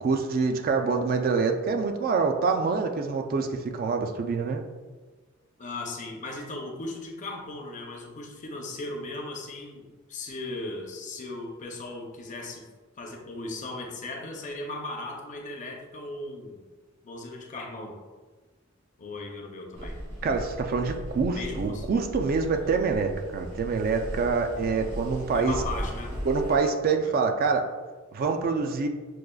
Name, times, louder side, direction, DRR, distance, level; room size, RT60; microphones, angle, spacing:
voice 1, 0.0-4.6 20.2-25.5 26.2-27.7 28.1-28.9, right 4 dB, 45° right, 5 dB, 0.3 m, -26 dB
voice 2, 5.6-12.6 13.0-16.6 17.0-18.0 19.0-20.0 21.3-21.9 25.3-26.2 27.0-27.1, left 2 dB, 40° left, 2 dB, 0.5 m, -37 dB
sound 1, 19.7-26.6, equal, 70° right, 1.2 m, -37 dB
6.1 x 2.4 x 2.3 m, 1.3 s
head